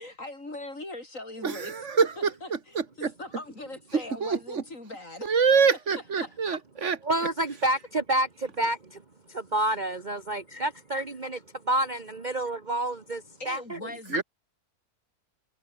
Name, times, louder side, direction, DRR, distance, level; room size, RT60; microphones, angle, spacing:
voice 1, 0.0-1.8 2.2-5.3 5.7-6.6 8.6-8.7 10.5-10.6 13.4-14.2, left 2 dB, 55° left, 5.9 m, -41 dB
voice 2, 1.4-2.3 2.8-3.1 4.2-4.6 5.3-7.0 14.1-14.2, right 5 dB, 50° right, 2.4 m, -25 dB
voice 3, 7.0-9.0 9.3-13.2 13.4-13.8, right 1 dB, 30° right, 1.6 m, -29 dB
omnidirectional pair, 1.6 m